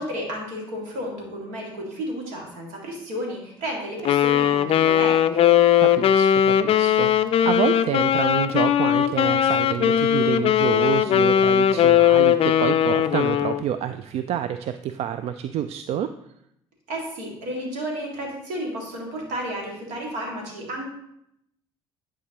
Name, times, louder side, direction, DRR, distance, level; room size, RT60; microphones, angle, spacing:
voice 1, 0.0-5.5 16.9-20.9, equal, 75° right, 0 dB, 2.0 m, -32 dB
Wind instrument woodwind instrument, 4.1-13.6, left 10 dB, 50° left, 0.4 m, -19 dB
voice 2, 5.8-16.1, right 10 dB, 55° right, 11 dB, 0.4 m, -28 dB
9.8 x 4.8 x 2.9 m, 0.77 s
hypercardioid pair, 55°, 13 cm